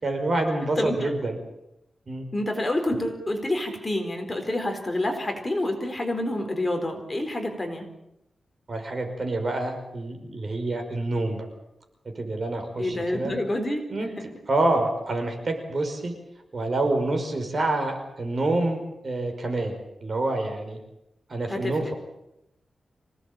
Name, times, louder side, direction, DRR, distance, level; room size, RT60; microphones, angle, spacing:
voice 1, 0.0-1.4 2.1-2.3 8.7-11.5 12.1-13.3 13.9-14.1 14.5-16.1 16.5-20.8 21.3-21.9, right 2 dB, 40° right, 5 dB, 5.3 m, -27 dB
voice 2, 0.8-1.1 2.3-7.9 12.8-13.8 21.5-21.7, left 1 dB, 20° left, 4 dB, 4.3 m, -28 dB
26.5 x 18.5 x 8.9 m, 0.86 s
wide cardioid pair, 155°, 0 cm